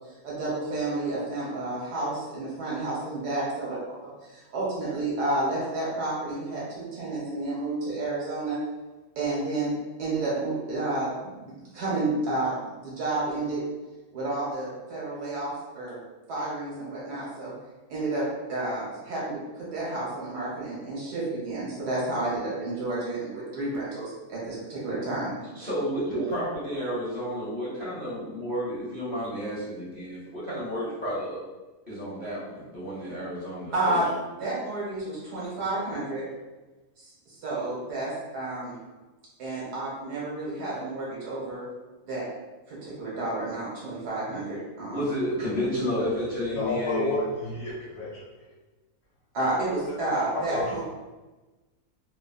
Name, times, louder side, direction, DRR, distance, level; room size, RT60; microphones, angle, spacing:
voice 1, 0.2-8.6 9.1-9.7 10.0-12.6 12.8-13.6 14.1-16.0 16.3-17.5 17.9-25.3 26.1-26.2 33.7-34.1 34.4-36.2 37.0-38.7 39.4-41.7 42.0-42.2 42.7-45.0 49.3-50.8, right 2 dB, 80° right, -6 dB, 1.6 m, -30 dB
voice 2, 25.5-31.4 31.9-34.0 44.8-47.2, equal, 5° left, -9 dB, 0.8 m, -31 dB
voice 3, 46.5-48.2 50.5-50.8, left 1 dB, 70° left, -8 dB, 1.2 m, -30 dB
3.2 x 2.2 x 2.3 m, 1.2 s
omnidirectional pair, 1.7 m